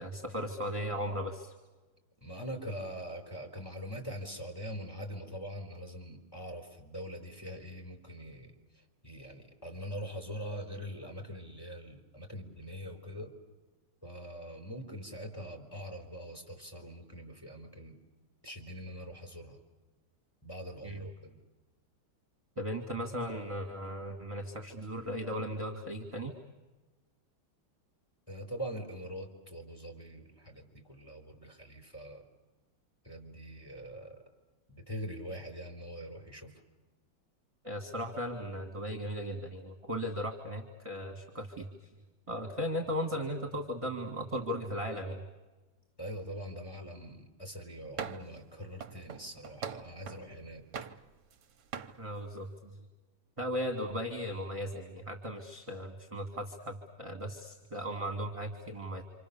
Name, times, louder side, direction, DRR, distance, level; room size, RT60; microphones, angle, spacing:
voice 1, 0.0-1.5 20.8-21.0 22.6-26.3 37.6-41.7 42.3-45.2 52.0-52.7 53.4-59.0, equal, 15° right, 3 dB, 2.0 m, -37 dB
voice 2, 2.2-13.3 14.0-18.0 18.4-19.6 20.4-21.4 28.3-32.2 33.0-34.2 34.7-36.6 46.0-50.7, equal, 10° left, 2 dB, 4.2 m, -43 dB
sound 1, 48.0-48.4 48.8-50.3 50.7-51.4 51.7-52.0, right 7 dB, 60° right, 1.5 m, -41 dB
27.5 x 26.5 x 7.0 m, 1.2 s
omnidirectional pair, 2.3 m